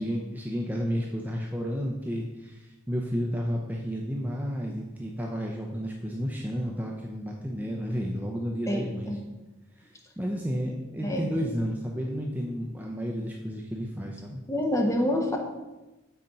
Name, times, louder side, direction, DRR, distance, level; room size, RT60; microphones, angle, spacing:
voice 1, 0.0-9.2 9.8-14.4, equal, 10° right, 0 dB, 0.6 m, -32 dB
voice 2, 8.7-9.2 11.0-11.4 14.5-15.4, left 1 dB, 15° left, 2 dB, 0.9 m, -27 dB
7.8 x 4.3 x 5.4 m, 1.1 s
head